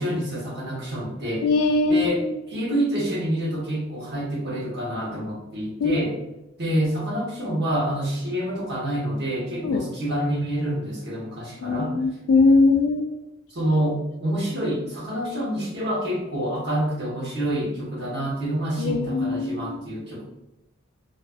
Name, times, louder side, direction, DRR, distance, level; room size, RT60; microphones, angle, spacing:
voice 1, 0.0-1.5 1.9-2.2 2.5-6.1 6.6-11.9 13.5-20.2, right 1 dB, 50° right, -5 dB, 0.9 m, -27 dB
voice 2, 1.4-2.4 5.8-6.1 9.6-9.8 11.6-13.1 18.8-19.8, left 3 dB, 85° left, 7 dB, 0.3 m, -21 dB
2.4 x 2.3 x 2.4 m, 0.96 s
head